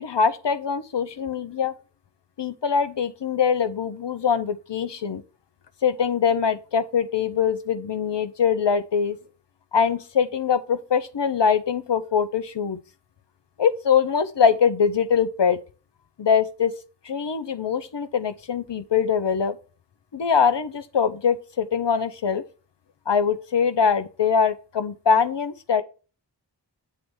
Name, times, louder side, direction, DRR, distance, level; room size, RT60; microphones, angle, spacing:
voice 1, 0.0-1.7 2.4-5.2 5.8-9.2 9.7-12.8 13.6-15.6 16.2-16.7 17.0-19.6 20.1-22.4 23.1-25.8, left 6 dB, 85° left, 0.8 m, -23 dB
8.5 x 3.1 x 6.2 m
wide cardioid pair, 50°, 42 cm